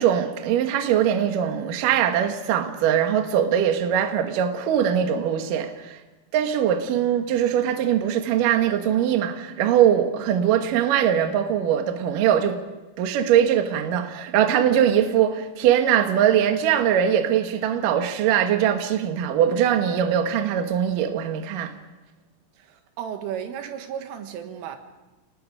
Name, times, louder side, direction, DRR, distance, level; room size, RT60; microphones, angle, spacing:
voice 1, 0.0-6.0 6.3-12.6 13.0-21.7, right 9 dB, 65° right, 2.2 m, -21 dB
voice 2, 22.6-24.8, right 9 dB, 85° right, 4.1 m, -34 dB
28.5 x 19.5 x 5.0 m
omnidirectional pair, 5.6 m